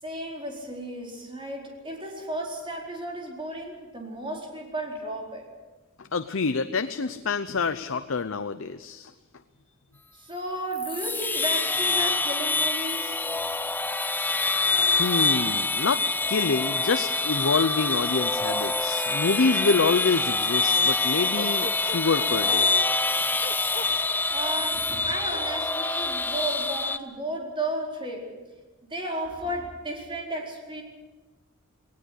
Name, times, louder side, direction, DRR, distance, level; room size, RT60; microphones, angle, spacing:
voice 1, 0.0-5.5 10.1-13.2 24.3-28.3 28.9-30.8, right 1 dB, 25° right, 0 dB, 4.5 m, -34 dB
voice 2, 6.0-9.1 15.0-16.0 16.3-22.7, left 4 dB, 65° left, 10 dB, 0.7 m, -26 dB
sound 1, 10.7-27.0, left 3 dB, 10° left, 0.6 m, -26 dB
Bark, 21.3-22.8 23.4-23.9, left 3 dB, 35° left, 0.9 m, -37 dB
19.5 x 19.5 x 8.3 m, 1.2 s
head